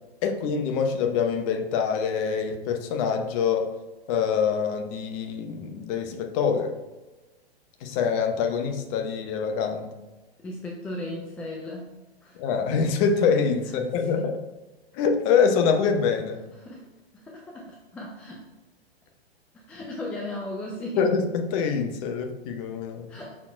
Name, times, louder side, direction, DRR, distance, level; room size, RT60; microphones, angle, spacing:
voice 1, 0.2-3.7 4.1-6.7 7.8-9.9 12.4-14.3 14.9-16.4 21.0-23.1, left 6 dB, 30° left, 5 dB, 0.7 m, -25 dB
voice 2, 10.4-11.9 12.2-12.4 13.7-14.3 16.5-16.8 17.1-18.4 19.5-21.1 23.1-23.4, left 1 dB, 5° left, -2 dB, 0.3 m, -37 dB
5.7 x 4.3 x 4.4 m, 1.1 s
figure-of-eight pair, 110°, 32 cm